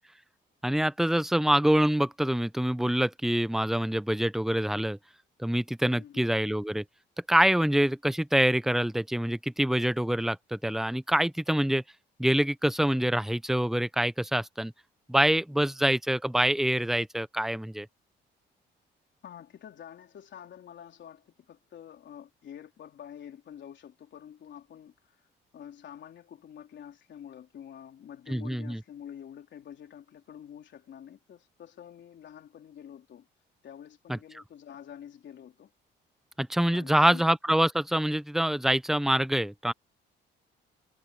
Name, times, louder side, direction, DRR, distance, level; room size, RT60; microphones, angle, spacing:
voice 1, 0.6-5.0 5.4-6.8 7.3-11.8 12.2-14.7 15.1-17.9 28.3-28.8 34.1-34.2 36.4-39.7, right 1 dB, ahead, 0.7 m, -25 dB
voice 2, 5.9-6.3 19.2-25.3 25.5-33.3 33.6-35.7 36.7-37.3, left 9 dB, 65° left, 3.8 m, -47 dB
cardioid pair, 90°, 20 cm